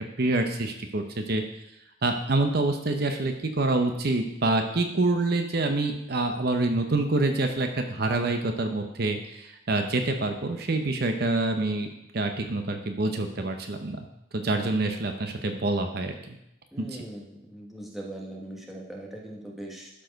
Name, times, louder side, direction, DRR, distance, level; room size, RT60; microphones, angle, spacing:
voice 1, 0.0-1.4 2.0-11.9 12.1-14.0 14.3-16.4 16.8-16.9, right 2 dB, 50° right, 5 dB, 0.8 m, -26 dB
voice 2, 16.7-19.9, right 1 dB, ahead, -3 dB, 1.3 m, -40 dB
12.0 x 4.7 x 5.2 m, 0.83 s
head